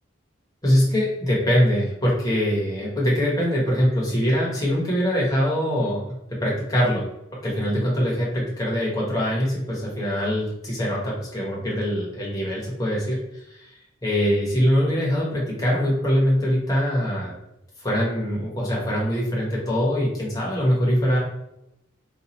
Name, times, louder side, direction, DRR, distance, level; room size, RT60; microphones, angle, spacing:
voice 1, 0.6-6.1 6.4-7.1 7.4-13.7 14.0-17.3 17.8-21.2, equal, 15° left, -5 dB, 1.0 m, -23 dB
4.0 x 2.5 x 2.9 m, 0.83 s
head